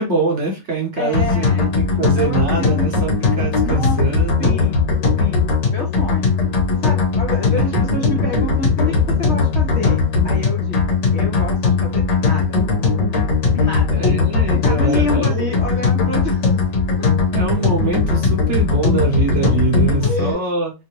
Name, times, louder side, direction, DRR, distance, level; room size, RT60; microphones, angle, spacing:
voice 1, 0.0-4.6 7.5-7.8 14.0-15.6 17.3-20.7, right 4 dB, 50° right, 0 dB, 1.0 m, -23 dB
voice 2, 1.0-3.1 3.6-4.0 4.4-4.9 5.2-5.4 5.7-6.4 6.8-12.6 13.5-14.0 14.5-16.5 20.0-20.4, left 2 dB, 55° left, 0 dB, 0.8 m, -28 dB
sound 1, 1.1-20.3, left 4 dB, 90° left, 1.8 m, -18 dB
3.6 x 2.6 x 2.9 m, 0.27 s
omnidirectional pair, 1.8 m